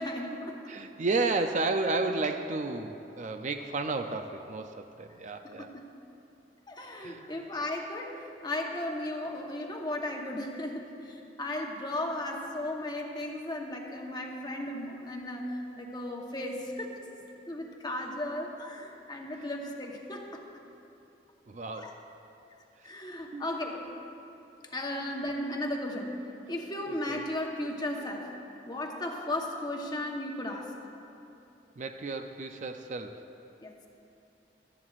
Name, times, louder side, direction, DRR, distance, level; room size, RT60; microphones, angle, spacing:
voice 1, 0.0-0.6 5.4-5.9 6.7-15.5 15.8-17.0 17.5-20.4 21.7-21.9 22.8-23.9 24.7-26.2 26.5-28.3 28.7-30.7 33.6-33.7, left 1 dB, 25° left, 1 dB, 1.0 m, -35 dB
voice 2, 0.7-5.7 7.0-7.4 19.4-19.5 21.5-22.0 22.8-22.9 23.3-23.5 26.9-27.2 31.8-33.3, right 3 dB, 45° right, 6 dB, 0.4 m, -32 dB
18.0 x 13.0 x 2.4 m, 2.8 s
head